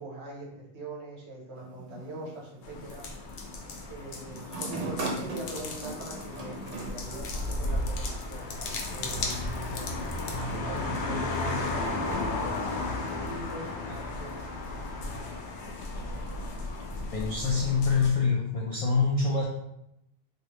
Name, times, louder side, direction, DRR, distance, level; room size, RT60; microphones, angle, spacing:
voice 1, 0.0-3.0 3.9-14.4, right 2 dB, 75° right, -3 dB, 1.2 m, -42 dB
sound 1, 1.5-2.8 4.3-7.8, right 2 dB, 45° right, 0.5 m, -39 dB
sound 2, 2.6-18.1, left 2 dB, 85° left, 0.9 m, -34 dB
voice 2, 17.1-19.4, left 4 dB, 65° left, -2 dB, 0.3 m, -25 dB
3.2 x 2.5 x 2.9 m, 0.81 s
omnidirectional pair, 1.1 m